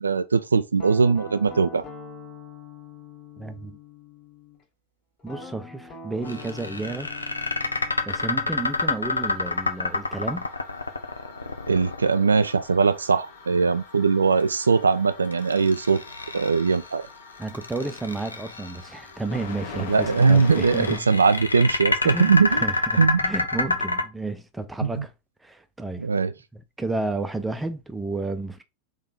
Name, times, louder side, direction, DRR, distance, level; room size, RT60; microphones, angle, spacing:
voice 1, 0.0-1.8 11.7-16.0 16.3-17.0 19.9-22.6 23.0-23.2 24.8-25.1 26.0-26.3, right 5 dB, 75° right, 0.3 m, -20 dB
Guitar, 0.8-4.6 5.2-10.0, left 3 dB, 30° left, 1.8 m, -44 dB
voice 2, 3.4-3.8 5.2-7.1 8.1-10.5 17.4-21.1 22.0-25.1 25.4-26.1 26.5-28.6, right 2 dB, 5° right, 0.5 m, -32 dB
sound 1, 6.3-12.5 15.3-16.9 17.4-18.8 20.0-24.0, left 3 dB, 80° left, 0.6 m, -28 dB
sound 2, 8.6-21.0, left 5 dB, 60° left, 1.1 m, -43 dB
3.8 x 3.2 x 4.0 m
figure-of-eight pair, 90°, 0 cm